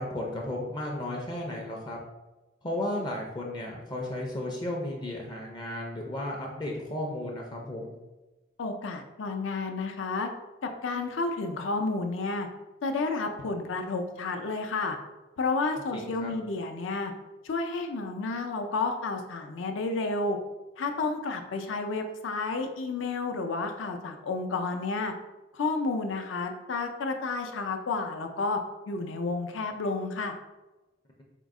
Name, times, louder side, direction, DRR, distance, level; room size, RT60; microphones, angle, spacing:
voice 1, 0.0-2.0 2.6-8.0 15.9-16.3, left 1 dB, 25° left, -1 dB, 0.4 m, -34 dB
voice 2, 8.6-10.3 10.6-12.5 12.8-15.0 15.4-17.1 17.4-20.4 20.8-25.1 25.5-28.6 28.9-30.3, left 3 dB, 75° left, 5 dB, 0.5 m, -31 dB
4.4 x 2.0 x 3.6 m, 1.1 s
head